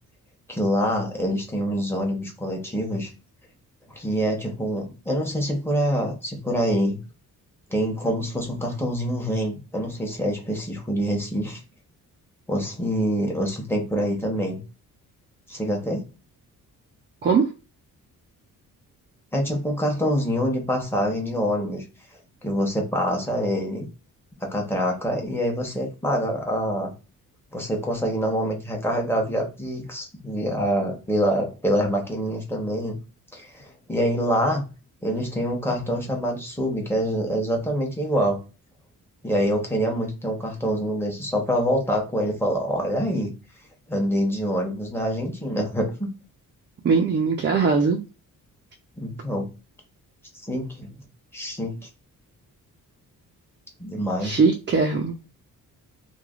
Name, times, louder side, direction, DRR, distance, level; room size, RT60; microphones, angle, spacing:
voice 1, 0.5-3.1 3.9-7.0 7.7-11.6 12.5-14.6 15.5-16.1 19.3-21.8 22.4-23.9 24.4-26.9 27.5-33.0 33.3-34.7 35.0-38.4 39.2-43.3 43.9-46.1 49.0-49.5 50.5-50.9 51.3-51.8 53.8-54.4, equal, 5° left, 0 dB, 0.9 m, -25 dB
voice 2, 46.8-48.0 54.2-55.2, right 5 dB, 35° right, 2 dB, 0.4 m, -20 dB
3.1 x 2.2 x 2.3 m, 0.31 s
cardioid pair, 135°, 34 cm